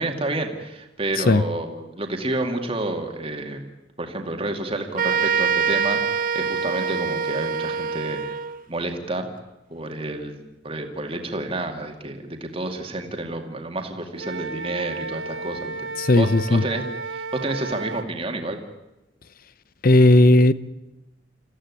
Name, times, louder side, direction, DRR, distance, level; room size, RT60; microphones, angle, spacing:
voice 1, 0.0-3.6 4.0-8.3 8.7-9.3 9.7-15.9 16.2-16.8 17.1-18.6, right 2 dB, 30° right, 2.3 m, -29 dB
sound 1, 5.0-8.6, right 6 dB, 45° right, 0.7 m, -24 dB
Wind instrument woodwind instrument, 14.2-18.1, right 3 dB, 80° right, 0.9 m, -33 dB
voice 2, 16.0-16.6 19.8-20.5, left 1 dB, 50° left, 0.8 m, -15 dB
27.0 x 15.0 x 9.8 m
head